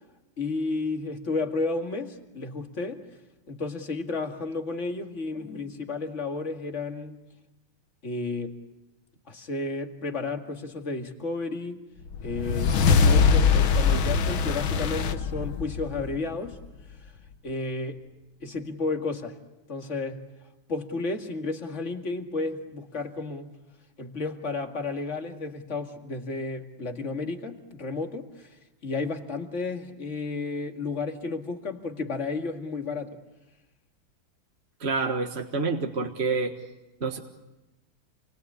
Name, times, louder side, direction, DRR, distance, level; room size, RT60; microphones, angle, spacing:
voice 1, 0.4-3.0 3.5-7.2 8.0-8.6 9.3-11.8 12.2-16.6 17.4-18.1 18.4-19.4 19.7-20.2 20.7-23.5 24.0-33.2, left 3 dB, 35° left, 4 dB, 2.3 m, -32 dB
sound 1, 12.1-16.7, left 5 dB, 85° left, 2.0 m, -22 dB
voice 2, 34.8-36.5 37.0-37.2, right 4 dB, 35° right, 4 dB, 1.6 m, -27 dB
28.5 x 22.5 x 8.4 m, 1.0 s
omnidirectional pair, 2.1 m